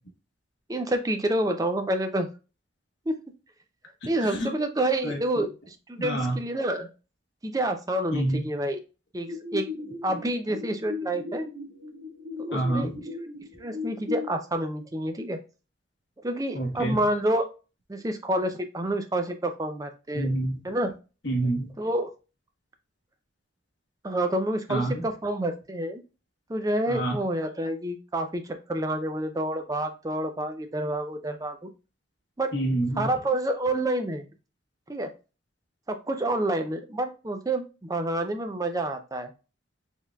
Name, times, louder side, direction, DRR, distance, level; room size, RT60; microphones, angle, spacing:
voice 1, 0.7-2.3 3.1-3.2 4.1-6.9 7.4-8.8 9.1-9.6 10.0-11.5 12.4-12.9 13.6-15.4 16.2-17.4 17.9-20.3 20.6-20.9 21.8-22.1 24.0-26.0 26.5-31.7 32.4-32.5 33.0-34.3 34.9-35.1 35.9-39.3, right 1 dB, 20° right, 6 dB, 0.4 m, -28 dB
voice 2, 5.0-5.5 6.0-6.4 8.1-8.5 12.5-13.0 16.5-17.0 20.1-20.6 21.2-21.7 24.7-25.1 26.9-27.2 32.5-33.1, right 1 dB, 60° left, 1 dB, 1.1 m, -28 dB
sound 1, 9.3-14.3, left 4 dB, 65° right, 1.3 m, -36 dB
4.4 x 3.6 x 2.3 m, 0.32 s
head